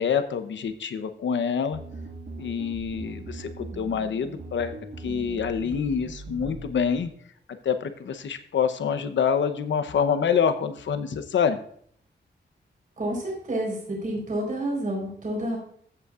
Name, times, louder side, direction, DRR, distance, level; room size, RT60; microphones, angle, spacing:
voice 1, 0.0-1.8 2.4-4.8 5.0-7.1 7.6-11.6, left 7 dB, 90° left, 10 dB, 0.8 m, -26 dB
sound 1, 1.7-7.1, right 3 dB, 75° right, 1.9 m, -40 dB
voice 2, 13.0-15.6, right 1 dB, 45° right, -2 dB, 4.2 m, -29 dB
14.5 x 8.2 x 2.5 m, 0.63 s
wide cardioid pair, 160°, 19 cm